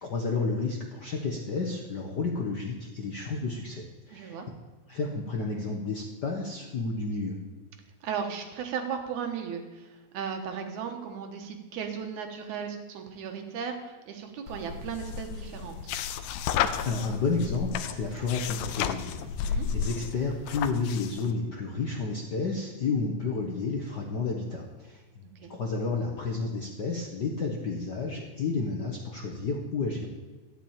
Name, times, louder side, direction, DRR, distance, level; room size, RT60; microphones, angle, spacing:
voice 1, 0.0-4.4 4.9-7.4 16.8-25.0 25.5-30.1, left 4 dB, 60° left, 0 dB, 1.1 m, -31 dB
voice 2, 4.1-4.5 8.0-15.9 19.4-19.7 25.4-25.5, right 7 dB, 85° right, 4 dB, 2.7 m, -36 dB
sound 1, 14.5-21.3, left 8 dB, 80° left, 1.8 m, -33 dB
13.0 x 6.1 x 8.8 m, 1.2 s
omnidirectional pair, 3.3 m